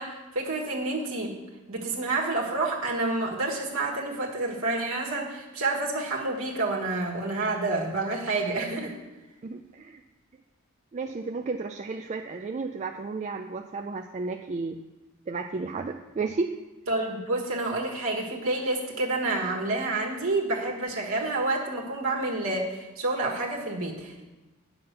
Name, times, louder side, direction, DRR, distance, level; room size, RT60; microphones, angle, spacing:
voice 1, 0.0-1.3 1.7-8.9 16.9-24.2, right 2 dB, 70° right, -2 dB, 1.5 m, -29 dB
voice 2, 9.4-10.0 10.9-14.8 15.3-16.6, right 4 dB, 35° right, 5 dB, 0.3 m, -33 dB
9.6 x 5.7 x 6.6 m, 1.1 s
head